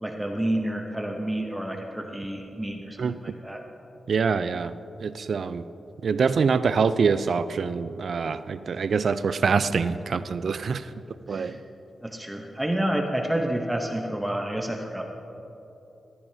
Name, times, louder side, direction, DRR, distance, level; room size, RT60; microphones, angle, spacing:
voice 1, 0.0-3.6 11.3-11.5 12.0-15.1, right 1 dB, 10° right, 3 dB, 0.7 m, -29 dB
voice 2, 3.0-3.3 4.1-4.7 5.0-5.6 6.0-10.8 11.3-11.5, right 5 dB, 65° right, 14 dB, 0.3 m, -25 dB
14.0 x 11.5 x 2.7 m, 3.0 s
cardioid pair, 85°, 0 cm